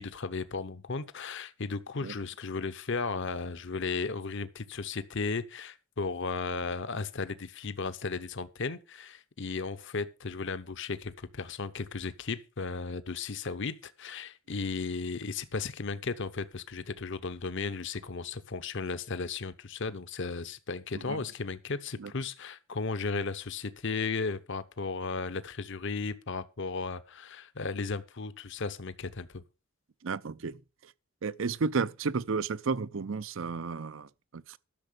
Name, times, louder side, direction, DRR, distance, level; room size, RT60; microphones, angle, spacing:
voice 1, 0.0-29.4, left 4 dB, 60° left, 0.8 m, -35 dB
voice 2, 30.0-30.6 31.2-34.6, right 4 dB, 60° right, 0.6 m, -32 dB
12.5 x 6.5 x 6.6 m
head